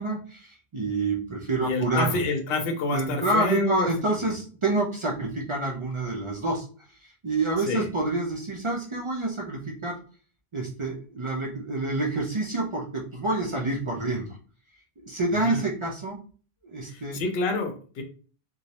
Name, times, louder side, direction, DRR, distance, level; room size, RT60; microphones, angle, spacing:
voice 1, 0.0-2.2 2.9-6.7 7.0-10.0 10.5-14.4 15.0-16.2 16.6-17.2, right 2 dB, 45° right, -2 dB, 0.4 m, -28 dB
voice 2, 1.6-3.9 4.2-4.3 7.7-7.9 15.3-15.6 16.9-18.0, left 2 dB, 75° left, 4 dB, 0.8 m, -28 dB
2.3 x 2.0 x 2.7 m, 0.39 s
omnidirectional pair, 1.1 m